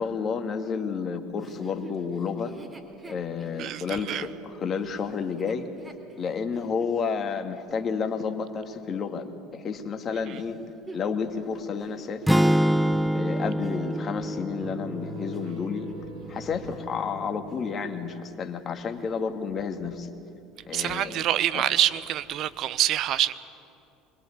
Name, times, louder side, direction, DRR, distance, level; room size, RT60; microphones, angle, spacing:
voice 1, 0.0-2.5 3.1-5.7 6.2-10.6 10.9-12.5 13.1-15.9 16.3-20.1 20.7-21.2 21.5-21.6, left 5 dB, 40° left, 2.1 m, -31 dB
Chuckle chortle, 1.4-7.0 7.6-7.7 10.3-14.3 14.9-16.4 16.7-17.0 17.4-18.1 18.4-18.5 18.9-19.4 20.0-20.1, right 2 dB, 20° right, 3.3 m, -48 dB
voice 2, 3.6-4.3 20.7-23.3, right 12 dB, 50° right, 0.9 m, -26 dB
sound 1, 12.3-16.4, equal, 5° right, 0.5 m, -26 dB
sound 2, 14.6-18.2, equal, 85° right, 4.5 m, -42 dB
24.0 x 21.0 x 8.6 m
hypercardioid pair, 70°, 0 cm